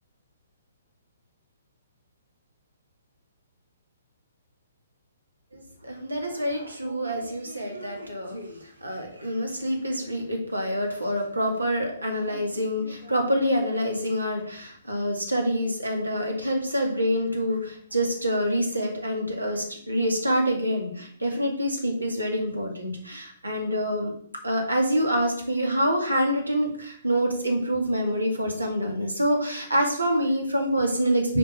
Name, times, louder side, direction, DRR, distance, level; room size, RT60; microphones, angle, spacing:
voice 1, 5.5-24.1 24.4-31.4, equal, 85° right, 2 dB, 2.2 m, -26 dB
6.8 x 4.8 x 5.5 m, 0.62 s
figure-of-eight pair, 125°, 0 cm